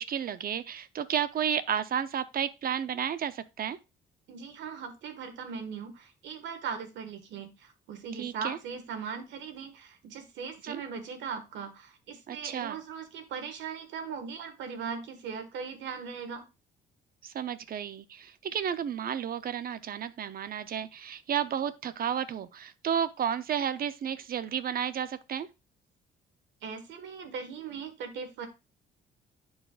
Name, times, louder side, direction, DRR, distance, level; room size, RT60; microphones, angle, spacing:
voice 1, 0.0-3.8 8.1-8.6 10.6-10.8 12.3-12.8 17.2-25.5, right 8 dB, 50° right, 0.7 m, -32 dB
voice 2, 4.3-16.4 26.6-28.5, right 6 dB, 80° right, 1.7 m, -39 dB
10.5 x 4.8 x 2.4 m
cardioid pair, 90°, 19 cm